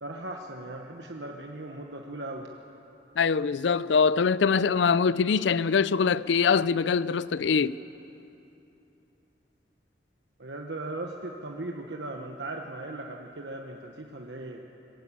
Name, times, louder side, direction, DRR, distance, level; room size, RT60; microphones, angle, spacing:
voice 1, 0.0-2.5 10.4-14.6, right 2 dB, 75° right, 1.1 m, -38 dB
voice 2, 3.2-7.8, left 5 dB, 85° left, 0.5 m, -23 dB
20.5 x 15.5 x 8.8 m
head